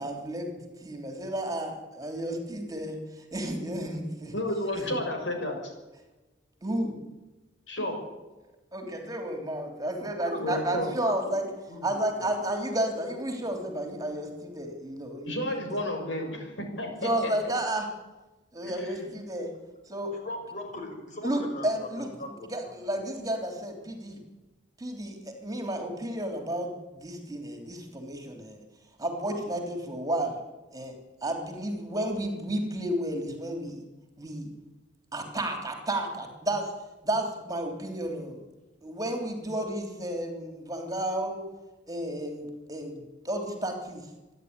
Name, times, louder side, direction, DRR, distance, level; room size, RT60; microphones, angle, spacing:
voice 1, 0.0-4.3 4.8-4.9 6.6-7.0 8.7-11.4 11.8-15.6 17.0-17.9 18.5-19.5 19.9-20.1 21.2-22.1 22.5-24.2 24.8-28.6 29.0-30.4 30.7-33.8 34.2-34.5 35.1-36.7 37.0-38.4 38.8-41.4 41.9-44.1, right 1 dB, 20° right, 4 dB, 3.4 m, -32 dB
voice 2, 4.3-5.7 7.7-8.0 10.4-10.9 15.2-17.5 18.6-19.1, left 1 dB, 80° left, 3 dB, 6.2 m, -32 dB
voice 3, 10.0-10.6 11.1-11.2 11.7-12.3 20.1-21.9 22.2-22.7, left 1 dB, 40° left, 4 dB, 5.5 m, -40 dB
27.0 x 11.0 x 9.7 m, 1.1 s
head